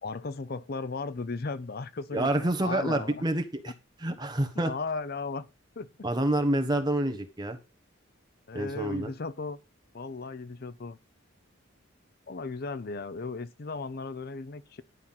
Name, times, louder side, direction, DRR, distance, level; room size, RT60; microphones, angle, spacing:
voice 1, 0.0-3.2 4.6-5.5 5.8-6.1 8.5-9.6 9.9-11.0 12.3-14.8, left 3 dB, 45° left, 0.5 m, -36 dB
voice 2, 2.1-3.7 4.0-4.7 6.0-7.6 8.5-9.1, right 1 dB, 20° right, 1.3 m, -28 dB
11.0 x 5.7 x 5.8 m
head